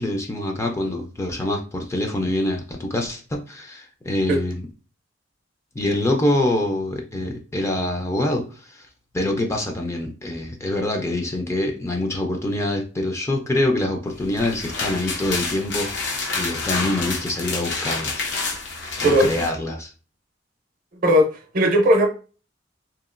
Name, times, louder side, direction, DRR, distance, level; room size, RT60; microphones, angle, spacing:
voice 1, 0.0-4.7 5.7-8.4 8.7-8.9 9.1-18.3 19.0-19.9, left 1 dB, 15° left, 0.4 m, -25 dB
sound 1, 14.2-19.5, left 3 dB, 70° left, 0.7 m, -28 dB
voice 2, 21.5-22.1, equal, 50° right, 0.6 m, -16 dB
2.8 x 2.4 x 2.4 m
head